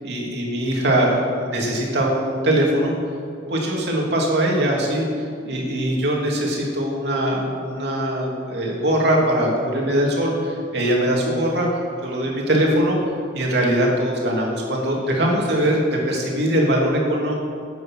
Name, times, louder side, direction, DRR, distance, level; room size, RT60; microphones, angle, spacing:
voice 1, 0.0-2.9 3.5-5.1 5.4-11.7 12.0-13.0 13.3-17.4, right 1 dB, 60° right, -2 dB, 2.8 m, -21 dB
13.5 x 9.1 x 6.1 m, 2.4 s
head